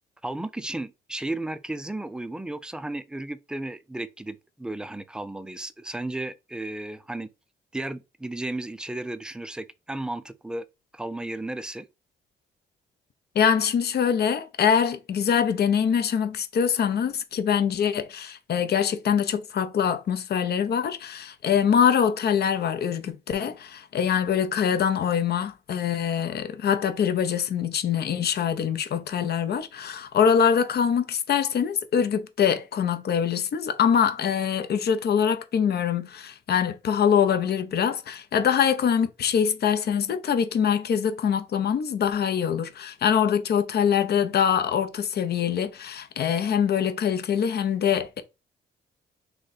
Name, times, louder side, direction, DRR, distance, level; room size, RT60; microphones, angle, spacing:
voice 1, 0.2-7.3 7.7-10.7 10.9-11.9, right 2 dB, 5° right, 0.4 m, -34 dB
voice 2, 13.3-48.2, left 7 dB, 55° left, 0.6 m, -24 dB
3.0 x 2.7 x 4.0 m
cardioid pair, 90°, 20 cm